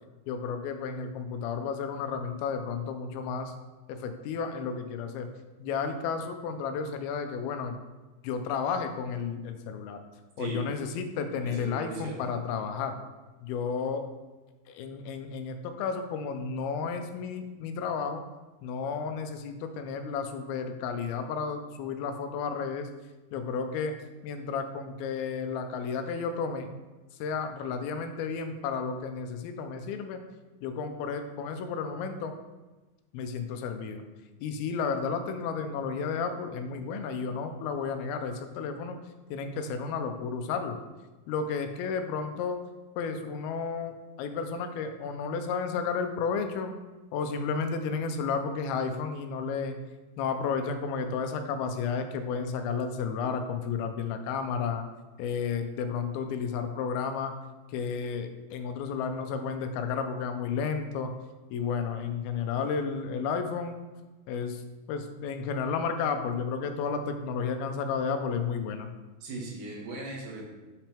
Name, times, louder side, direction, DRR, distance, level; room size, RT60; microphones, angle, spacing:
voice 1, 0.3-3.5 3.9-5.3 5.6-7.8 8.2-10.0 10.4-13.0 13.4-14.1 14.7-18.2 18.6-22.9 23.3-24.0 24.2-26.7 27.2-30.2 30.6-32.4 33.1-34.0 34.4-39.0 39.3-40.8 41.3-42.6 43.0-46.7 47.1-49.8 50.2-54.8 55.2-57.4 57.7-61.1 61.5-63.8 64.3-64.6 64.9-68.9, left 5 dB, 85° left, 7 dB, 2.5 m, -32 dB
voice 2, 11.4-12.2 69.2-70.5, right 2 dB, 90° right, -3 dB, 3.6 m, -38 dB
7.8 x 5.9 x 3.4 m, 1.2 s
omnidirectional pair, 4.4 m